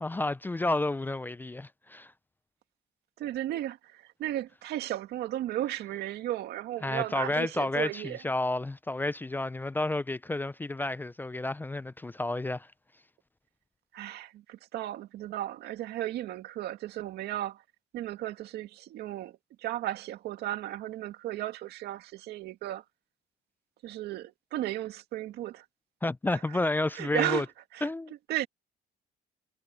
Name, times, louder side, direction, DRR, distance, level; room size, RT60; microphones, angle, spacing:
voice 1, 0.0-2.1 6.8-12.7 26.0-27.5 27.8-28.1, left 2 dB, 10° left, 0.4 m, -31 dB
voice 2, 3.2-8.2 13.9-17.6 17.9-22.8 23.8-25.7 26.3-26.4 26.9-27.5 27.7-27.9 28.3-28.5, right 14 dB, 75° right, 2.0 m, -35 dB
cardioid pair, 110°, 17 cm